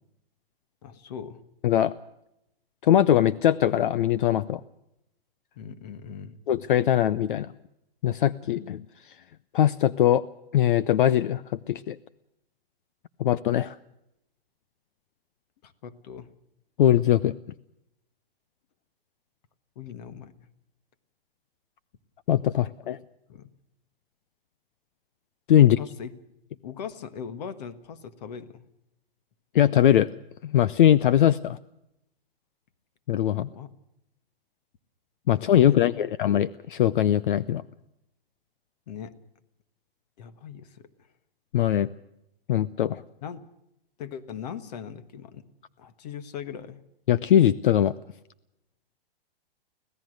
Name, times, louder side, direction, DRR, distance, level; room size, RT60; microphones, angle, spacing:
voice 1, 0.8-1.4 5.5-6.4 15.6-16.3 19.7-20.3 22.8-22.9 23.3-23.5 25.6-26.1 26.6-28.7 33.4-33.7 35.3-36.1 38.9-39.1 40.2-41.1 43.2-43.5 44.0-45.4 45.8-46.8, left 7 dB, 40° left, 14 dB, 1.5 m, -40 dB
voice 2, 1.6-1.9 2.8-4.6 6.5-7.5 8.0-8.8 9.5-10.2 10.5-12.0 13.2-13.7 16.8-17.3 22.3-23.0 25.5-25.8 29.5-30.1 30.4-31.6 33.1-33.5 35.3-37.6 41.5-41.9 42.5-43.0 47.1-47.9, left 11 dB, 55° left, 17 dB, 0.7 m, -21 dB
25.5 x 16.5 x 6.4 m, 0.84 s
hypercardioid pair, 170°, 30 cm